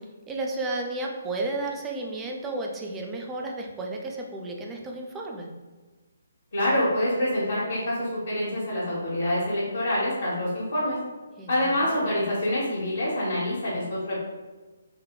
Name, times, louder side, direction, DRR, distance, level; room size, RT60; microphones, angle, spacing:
voice 1, 0.3-5.5 11.4-12.1, right 2 dB, 10° right, 0 dB, 0.4 m, -33 dB
voice 2, 6.5-11.0 11.5-14.2, left 1 dB, 60° left, -9 dB, 0.9 m, -26 dB
3.9 x 2.1 x 2.3 m, 1.3 s
figure-of-eight pair, 140°, 0 cm